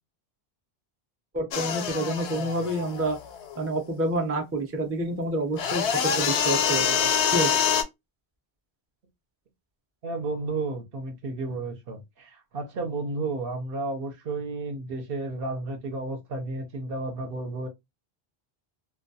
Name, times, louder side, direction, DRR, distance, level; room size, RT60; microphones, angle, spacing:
voice 1, 1.3-3.2 3.6-7.0 7.3-7.6, right 1 dB, 20° right, 0.4 m, -28 dB
sound 1, 1.5-3.5 5.6-7.8, left 8 dB, 85° left, 0.9 m, -25 dB
voice 2, 10.0-17.7, right 3 dB, 65° right, 0.8 m, -32 dB
2.2 x 2.2 x 2.6 m
omnidirectional pair, 1.1 m